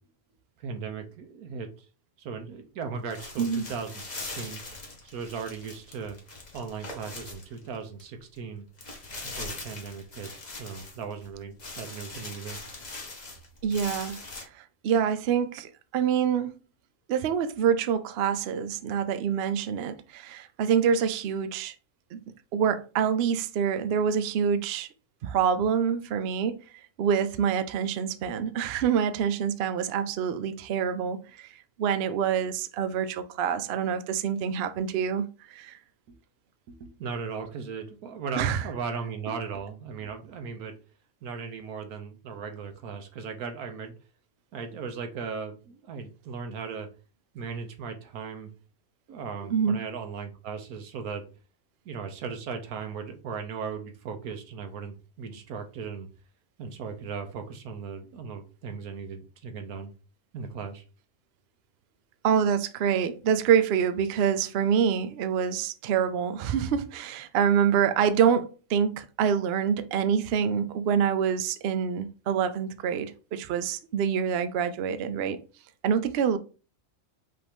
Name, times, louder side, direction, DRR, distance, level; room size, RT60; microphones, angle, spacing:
voice 1, 0.6-1.7 2.2-4.6 5.0-6.2 6.5-8.7 9.3-10.3 10.6-12.6 36.1-36.2 36.7-40.8 41.2-43.9 44.5-46.9 47.3-48.5 49.1-51.3 51.9-56.1 56.6-59.9 60.3-60.8, right 5 dB, 90° right, 1.3 m, -37 dB
sound 1, 3.1-8.0 8.4-8.5 8.8-11.3 11.6-14.4, left 2 dB, 30° left, 1.1 m, -41 dB
voice 2, 13.6-14.2 14.5-16.6 17.1-21.7 22.1-22.2 22.5-24.9 25.2-26.6 27.0-31.5 31.8-35.8 38.4-38.7 49.4-49.8 62.2-75.4 75.8-76.4, right 7 dB, 65° right, 0.6 m, -26 dB
5.6 x 2.7 x 3.5 m
omnidirectional pair, 1.5 m